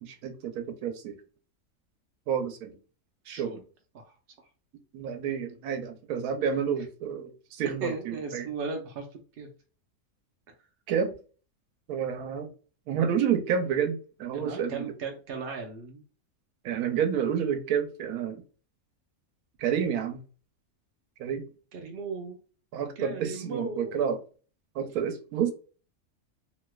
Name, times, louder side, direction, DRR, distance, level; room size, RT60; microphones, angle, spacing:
voice 1, 0.0-1.2 2.3-2.8 3.3-3.6 4.9-8.5 10.9-11.1 11.9-12.5 12.9-14.9 16.6-18.4 19.6-20.2 21.2-21.4 22.7-24.2 24.7-25.5, right 7 dB, 85° right, 7 dB, 1.1 m, -29 dB
voice 2, 3.3-3.6 3.9-4.0 7.8-9.5 14.3-16.0 21.7-22.4 23.0-24.0, right 4 dB, 65° right, 3 dB, 0.6 m, -37 dB
3.0 x 2.8 x 2.2 m, 0.37 s
omnidirectional pair, 1.5 m